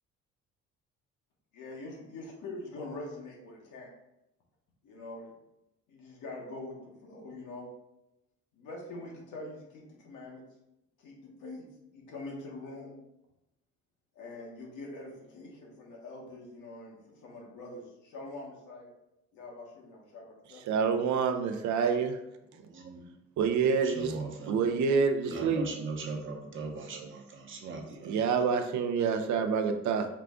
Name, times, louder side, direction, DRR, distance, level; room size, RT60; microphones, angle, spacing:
voice 1, 1.5-3.9 4.8-5.3 5.9-7.7 8.5-10.4 11.0-11.7 11.9-13.0 14.1-18.9 19.3-20.6 21.7-21.9, left 2 dB, 80° left, -1 dB, 1.2 m, -44 dB
voice 2, 20.7-22.2 23.4-26.4 26.9-27.1 28.0-30.1, right 6 dB, 70° right, 6 dB, 0.6 m, -28 dB
voice 3, 22.5-23.0 23.8-24.7 25.3-28.3, right 4 dB, 40° right, 1 dB, 0.9 m, -40 dB
4.8 x 2.3 x 3.6 m, 0.87 s
cardioid pair, 90°, 30 cm